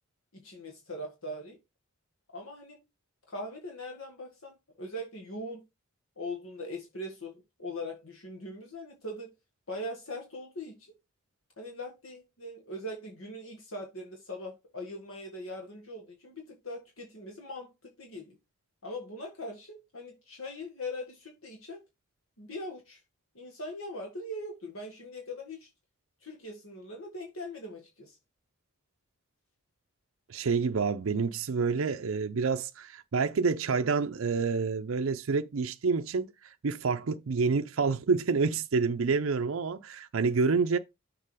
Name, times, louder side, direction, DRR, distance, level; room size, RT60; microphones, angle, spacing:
voice 1, 0.3-1.6 2.3-2.8 3.3-5.6 6.2-9.3 9.7-10.7 11.6-18.4 18.8-21.8 22.4-23.0 23.4-25.7 26.2-28.2, left 1 dB, 75° left, 1.8 m, -41 dB
voice 2, 30.3-40.8, right 4 dB, 70° right, 0.5 m, -28 dB
6.7 x 3.9 x 4.9 m
head